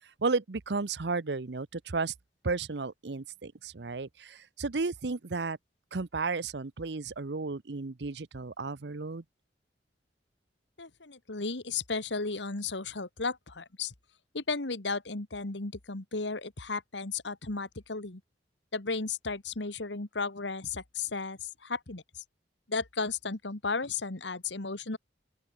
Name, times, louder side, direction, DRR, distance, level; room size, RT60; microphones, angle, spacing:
voice 1, 0.2-2.1 2.4-5.6 5.9-9.2, right 4 dB, 65° right, 0.8 m, -33 dB
voice 2, 10.8-13.9 14.3-18.2 18.7-22.2 22.7-25.0, left 4 dB, 85° left, 2.0 m, -34 dB
open air
head